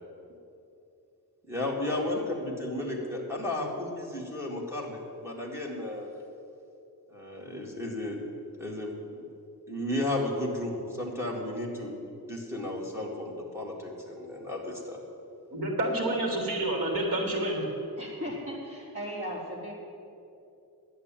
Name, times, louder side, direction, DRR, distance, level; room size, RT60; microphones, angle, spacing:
voice 1, 1.5-6.1 7.1-8.2 8.6-9.2 9.7-12.0 12.3-15.0, left 1 dB, 5° right, -2 dB, 2.1 m, -33 dB
voice 2, 15.5-17.6, right 1 dB, 60° right, 0 dB, 3.1 m, -28 dB
voice 3, 18.0-19.7, equal, 35° right, -5 dB, 4.0 m, -37 dB
11.0 x 8.3 x 9.0 m, 2.7 s
wide cardioid pair, 170°, 38 cm